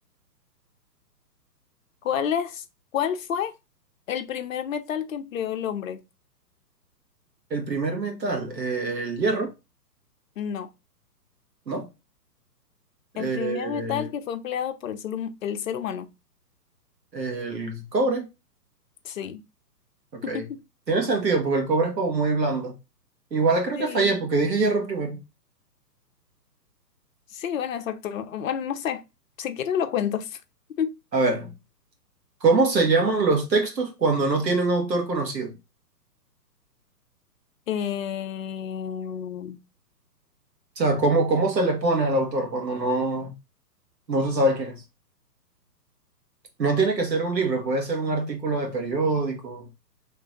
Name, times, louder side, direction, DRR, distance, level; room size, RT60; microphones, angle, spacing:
voice 1, 2.0-2.6 2.9-3.5 4.1-6.0 10.4-10.7 13.2-16.1 19.0-19.4 20.2-20.6 23.8-24.2 27.3-29.0 29.4-30.4 30.8-30.9 37.7-39.6, left 8 dB, 55° left, 0.5 m, -29 dB
voice 2, 7.5-9.5 11.7-11.9 13.2-14.1 17.1-18.3 20.3-20.4 20.9-22.7 23.3-25.2 31.1-31.5 32.4-35.6 40.8-43.3 44.1-44.8 46.6-49.7, right 3 dB, 85° right, 1.3 m, -24 dB
3.0 x 2.3 x 3.9 m
figure-of-eight pair, 125°, 49 cm